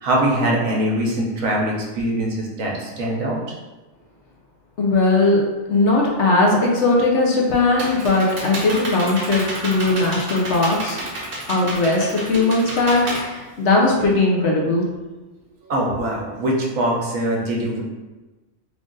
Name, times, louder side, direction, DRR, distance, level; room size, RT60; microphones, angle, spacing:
voice 1, 0.0-3.4 12.3-12.4 15.7-17.8, right 1 dB, 80° right, -2 dB, 1.2 m, -22 dB
voice 2, 4.8-5.4 5.7-11.0 11.5-14.9, left 2 dB, 65° left, -2 dB, 1.0 m, -18 dB
Computer keyboard, 7.2-14.1, right 1 dB, 60° right, 1.2 m, -30 dB
3.6 x 2.5 x 3.8 m, 1.2 s
omnidirectional pair, 1.4 m